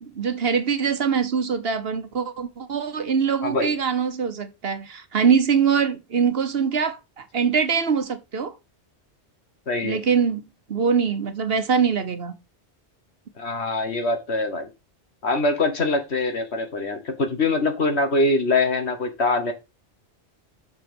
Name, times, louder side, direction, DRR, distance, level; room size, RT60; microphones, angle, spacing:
voice 1, 0.0-8.5 9.8-10.4 10.7-12.3, right 6 dB, 60° right, 1.3 m, -23 dB
voice 2, 3.4-3.7 9.7-10.0 13.4-14.7 15.2-19.5, left 2 dB, 70° left, 1.9 m, -23 dB
6.8 x 5.8 x 5.3 m
omnidirectional pair, 1.1 m